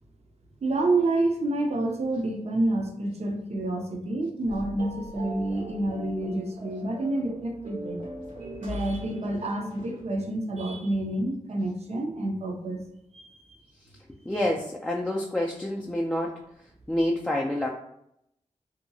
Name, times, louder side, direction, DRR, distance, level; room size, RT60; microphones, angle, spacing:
voice 1, 0.6-8.0 8.6-12.8 13.1-13.5, right 2 dB, 55° right, 2 dB, 0.6 m, -28 dB
sound 1, 4.5-10.0, equal, 85° right, 1.1 m, -39 dB
voice 2, 14.3-16.4 16.9-17.7, left 1 dB, 5° left, -1 dB, 0.3 m, -27 dB
2.8 x 2.2 x 2.6 m, 0.76 s
cardioid pair, 45°, 13 cm